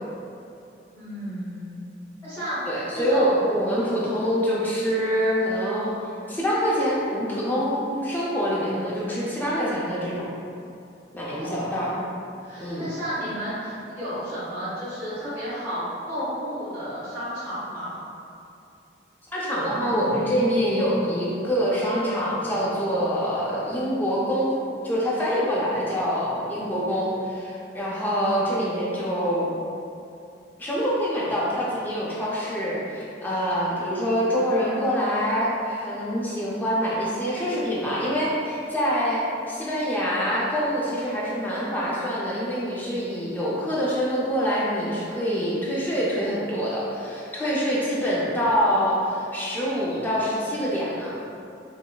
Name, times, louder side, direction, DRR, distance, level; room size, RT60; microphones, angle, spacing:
voice 1, 0.9-1.8 2.2-3.3 11.4-18.0, equal, 10° right, -15 dB, 1.1 m, -32 dB
voice 2, 2.7-5.9 6.3-10.3 11.1-11.9 12.6-12.9 19.3-24.5 24.8-29.5 30.6-51.1, equal, 10° left, -7 dB, 0.5 m, -25 dB
5.3 x 2.0 x 2.3 m, 2.7 s
head